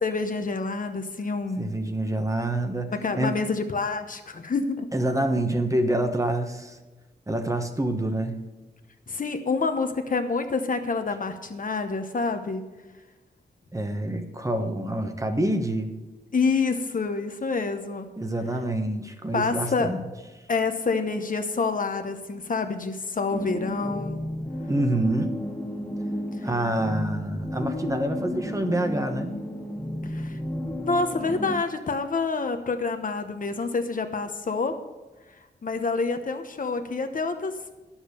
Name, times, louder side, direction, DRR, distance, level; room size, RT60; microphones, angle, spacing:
voice 1, 0.0-1.7 2.9-4.9 9.1-12.6 16.3-18.1 19.3-19.9 20.5-24.2 26.4-26.5 28.2-28.3 30.0-30.4 30.8-34.7 35.6-37.5, left 4 dB, 50° left, 7 dB, 1.0 m, -27 dB
voice 2, 1.6-3.4 4.9-6.8 7.3-8.4 13.7-15.9 18.2-20.0 24.7-25.3 26.4-29.4, right 1 dB, 20° right, 6 dB, 1.1 m, -27 dB
sound 1, 23.3-31.6, left 1 dB, 5° left, 1.4 m, -33 dB
11.0 x 7.3 x 6.7 m, 1.2 s
wide cardioid pair, 110°, 18 cm